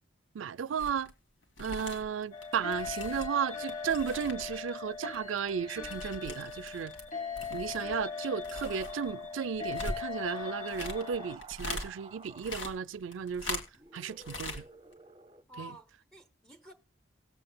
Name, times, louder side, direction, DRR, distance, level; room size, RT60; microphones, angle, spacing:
voice 1, 0.3-1.1 1.6-6.9 7.5-13.6 13.9-14.6 15.6-15.7, right 7 dB, 75° right, 0.4 m, -34 dB
sound 1, 0.8-1.1 1.4-4.7 4.9-7.1 7.3-11.9 12.2-14.0 14.2-14.6 14.9-15.0, left 2 dB, 70° left, 2.0 m, -41 dB
sound 2, 2.3-11.4, left 5 dB, 45° left, 1.2 m, -40 dB
sound 3, 8.5-9.4 9.9-12.8 13.7-15.4, right 3 dB, 25° right, 0.8 m, -52 dB
voice 2, 15.5-16.7, equal, 5° left, 0.8 m, -51 dB
19.0 x 7.8 x 2.2 m
head